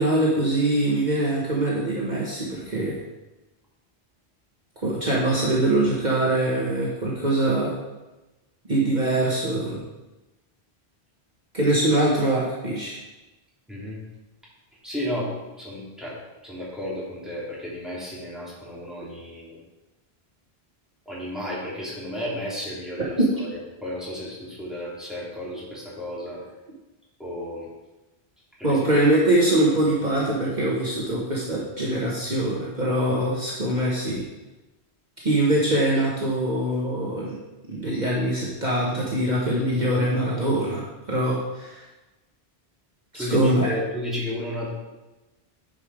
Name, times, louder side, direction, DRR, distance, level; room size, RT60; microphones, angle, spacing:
voice 1, 0.0-3.0 4.8-7.8 8.7-9.8 11.5-13.0 23.2-23.3 28.6-34.2 35.2-37.3 37.7-41.8 43.1-43.7, right 1 dB, 45° right, -5 dB, 1.4 m, -23 dB
voice 2, 13.7-14.0 14.8-16.2 16.4-19.6 21.1-23.5 23.8-26.4 27.2-27.7 28.6-28.8 43.1-44.7, left 1 dB, ahead, -8 dB, 3.1 m, -33 dB
9.8 x 5.3 x 4.8 m, 1.1 s
omnidirectional pair, 1.1 m